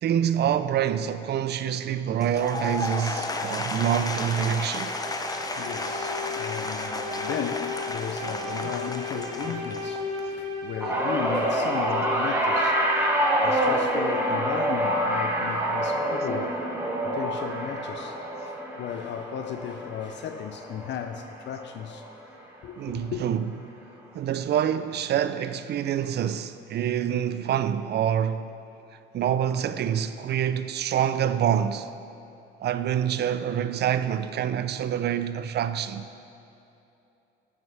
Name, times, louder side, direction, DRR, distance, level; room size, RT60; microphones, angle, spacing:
voice 1, 0.0-4.9 13.3-13.4 22.8-23.5 24.1-28.6 29.1-31.9 32.6-36.1, right 9 dB, 55° right, 0.4 m, -26 dB
Applause / Crowd, 2.1-10.3, left 2 dB, 20° left, 0.6 m, -33 dB
sound 1, 4.8-13.2, left 2 dB, 85° right, 1.5 m, -36 dB
voice 2, 5.6-12.9 13.4-16.6 17.0-22.1 22.6-23.2, left 8 dB, 65° left, 0.4 m, -35 dB
sound 2, 10.8-21.2 21.6-22.0 23.1-23.2, right 1 dB, 10° right, 1.3 m, -26 dB
9.6 x 7.8 x 3.3 m
cardioid pair, 90°, 20 cm